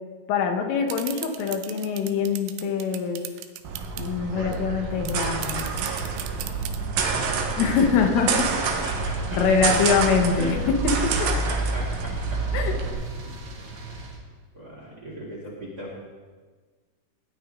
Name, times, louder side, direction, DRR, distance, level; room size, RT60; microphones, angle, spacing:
voice 1, 0.3-3.2 4.0-5.7 7.6-8.3 9.3-11.0 12.5-12.8, left 6 dB, 90° left, 4 dB, 4.0 m, -24 dB
sound 1, 0.9-4.1 4.5-4.6 4.8-6.8, right 13 dB, 90° right, 3.2 m, -36 dB
sound 2, 3.6-12.9, right 4 dB, 65° right, 2.5 m, -27 dB
voice 2, 4.3-5.1 7.1-7.6 8.6-9.4 10.4-10.7 11.2-12.4 12.8-12.9 13.2-13.3 13.8-14.0 14.5-16.0, equal, 25° right, -4 dB, 2.5 m, -38 dB
sound 3, 7.2-14.2, right 1 dB, 45° right, 2.7 m, -39 dB
19.0 x 11.5 x 3.8 m, 1.4 s
omnidirectional pair, 5.6 m